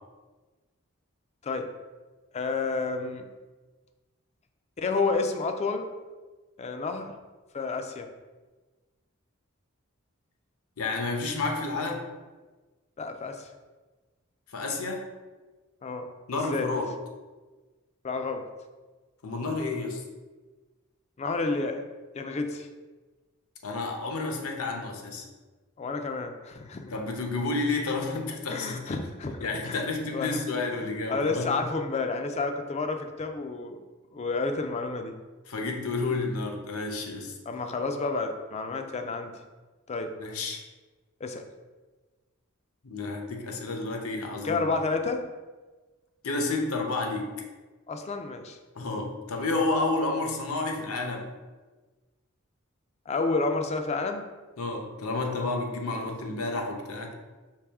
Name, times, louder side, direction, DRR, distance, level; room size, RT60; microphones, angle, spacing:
voice 1, 2.3-3.2 4.8-5.9 6.6-7.1 7.5-8.1 13.0-13.5 15.8-16.7 18.0-18.4 21.2-21.8 22.1-22.7 25.8-26.9 28.5-29.4 29.6-29.8 30.1-30.4 30.7-30.8 31.1-33.8 34.1-35.2 37.5-39.4 39.9-40.1 41.2-41.4 44.4-45.2 47.9-48.6 53.1-54.2, left 3 dB, 30° left, 6 dB, 0.4 m, -30 dB
voice 2, 10.8-12.0 14.5-15.1 16.3-16.9 19.2-20.0 23.6-25.2 26.9-29.0 29.4-31.5 35.5-37.4 40.2-40.6 42.8-44.7 46.2-47.3 48.7-51.3 54.6-57.1, left 3 dB, 75° left, 2 dB, 0.7 m, -30 dB
4.8 x 3.0 x 3.5 m, 1.3 s
head